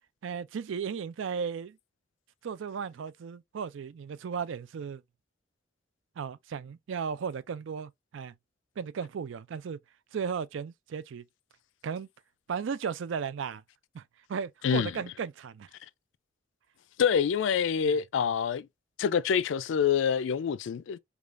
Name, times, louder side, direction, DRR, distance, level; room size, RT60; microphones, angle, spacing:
voice 1, 0.2-1.8 2.4-5.0 6.2-8.3 8.8-9.8 10.1-11.3 11.8-12.1 12.5-13.6 13.9-14.0 14.3-15.7, right 6 dB, 80° right, 0.4 m, -35 dB
voice 2, 17.0-18.7 19.0-21.0, left 7 dB, 75° left, 0.3 m, -26 dB
4.8 x 2.3 x 2.4 m
head